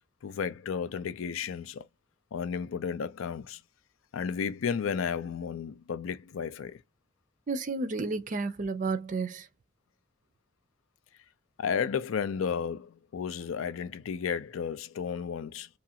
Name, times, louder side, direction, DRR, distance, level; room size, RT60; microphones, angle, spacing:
voice 1, 0.2-1.9 2.3-3.6 4.1-6.8 11.6-15.7, left 6 dB, 90° left, 0.4 m, -33 dB
voice 2, 7.5-9.5, right 3 dB, 40° right, 0.4 m, -31 dB
2.8 x 2.4 x 2.7 m
head